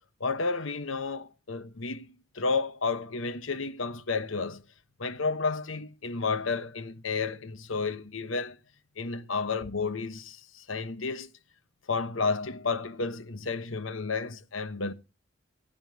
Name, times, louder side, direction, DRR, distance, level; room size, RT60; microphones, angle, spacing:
voice 1, 0.2-2.0 2.3-4.6 5.0-8.6 9.0-11.3 11.9-14.9, left 4 dB, 90° left, 1.2 m, -31 dB
16.0 x 10.0 x 2.8 m
head